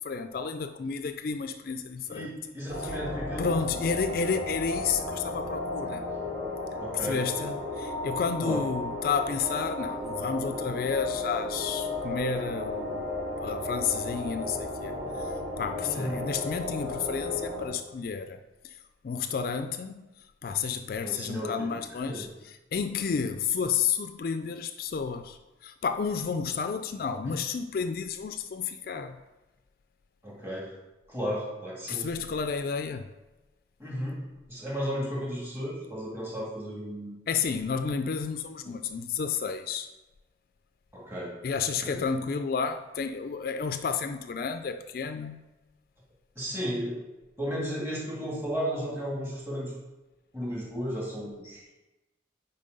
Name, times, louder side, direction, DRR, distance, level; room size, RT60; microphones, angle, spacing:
voice 1, 0.0-2.3 2.8-2.9 3.4-6.1 6.9-13.1 13.4-18.8 19.0-20.1 20.4-29.2 31.9-33.0 37.3-39.9 41.4-45.4, left 6 dB, 55° left, 0.3 m, -31 dB
voice 2, 2.1-3.5 6.8-7.2 8.4-8.6 15.8-16.2 21.0-21.8 22.1-22.2 27.2-27.3 30.2-30.7 31.1-32.1 33.8-34.2 34.5-37.2 40.9-41.3 41.8-42.0 46.4-47.1 47.4-49.7 50.3-51.7, equal, 15° right, 2.2 m, -34 dB
sound 1, 2.7-17.7, left 2 dB, 60° right, 2.8 m, -34 dB
9.1 x 4.2 x 5.3 m
head